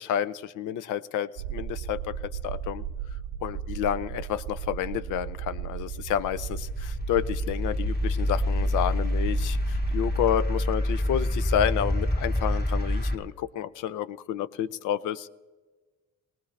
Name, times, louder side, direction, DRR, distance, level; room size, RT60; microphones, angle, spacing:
voice 1, 0.0-2.2 2.4-2.8 3.4-15.3, left 10 dB, 85° left, 15 dB, 0.6 m, -30 dB
sound 1, 1.4-10.9, right 9 dB, 85° right, 0.8 m, -36 dB
sound 2, 5.9-13.2, left 1 dB, 30° left, 2.2 m, -27 dB
19.0 x 19.0 x 3.2 m, 1.3 s
cardioid pair, 90°, 30 cm